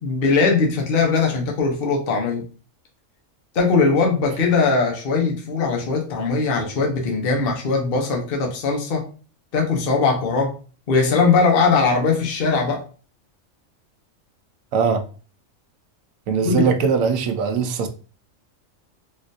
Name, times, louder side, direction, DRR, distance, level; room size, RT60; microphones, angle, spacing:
voice 1, 0.0-2.4 3.5-9.0 9.5-10.6 10.9-12.8 16.4-16.7, left 4 dB, 50° left, 0.9 m, -20 dB
voice 2, 14.7-15.0 16.3-17.9, right 6 dB, 85° right, 1.0 m, -20 dB
3.8 x 2.5 x 2.6 m
omnidirectional pair, 1.4 m